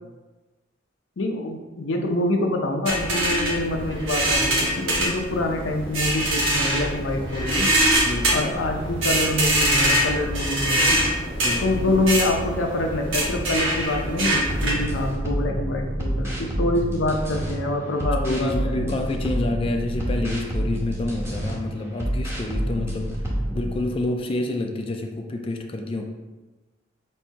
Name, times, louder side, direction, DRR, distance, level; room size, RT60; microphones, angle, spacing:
voice 1, 1.2-7.7 8.3-11.0 11.6-18.9, left 1 dB, 80° left, 2 dB, 0.6 m, -26 dB
sound 1, 2.9-15.1, right 1 dB, 90° right, 1.2 m, -24 dB
voice 2, 8.1-8.6 11.4-11.9 18.2-23.2 23.5-26.1, left 2 dB, 30° left, 3 dB, 0.3 m, -28 dB
sound 2, 14.5-17.5 18.0-21.5 22.0-23.8, equal, 15° right, 0.9 m, -28 dB
4.3 x 2.7 x 4.5 m, 1.2 s
head